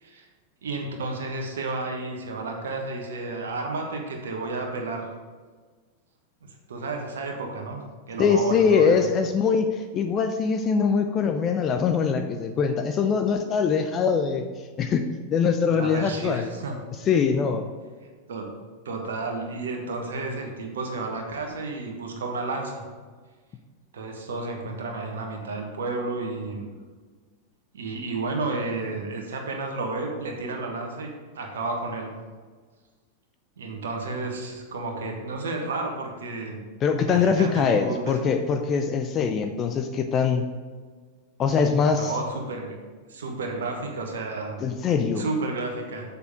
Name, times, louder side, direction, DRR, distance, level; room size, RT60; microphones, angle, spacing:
voice 1, 0.6-5.1 6.7-9.0 15.6-16.7 18.3-18.5 18.8-22.8 23.9-26.7 27.7-32.1 33.6-36.6 37.0-38.2 41.9-42.8 43.1-44.7 45.1-46.0, right 3 dB, 65° right, 2 dB, 1.3 m, -32 dB
voice 2, 8.2-14.4 14.8-15.0 15.3-16.5 17.1-17.7 36.8-40.4 41.4-42.1 44.6-45.2, left 6 dB, 30° left, 7 dB, 0.6 m, -23 dB
6.9 x 6.8 x 4.9 m, 1.5 s
figure-of-eight pair, 90°, 0 cm